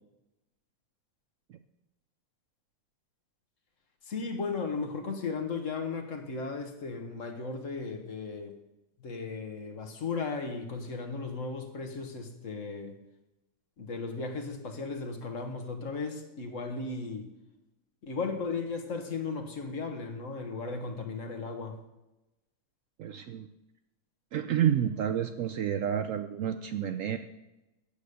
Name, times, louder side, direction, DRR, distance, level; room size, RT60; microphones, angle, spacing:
voice 1, 4.0-8.6 9.0-13.0 13.8-17.3 18.0-21.8, left 4 dB, 55° left, 5 dB, 1.4 m, -36 dB
voice 2, 23.0-23.5 24.3-27.2, right 9 dB, 70° right, 9 dB, 0.8 m, -29 dB
8.5 x 8.0 x 6.6 m, 0.97 s
omnidirectional pair, 1.7 m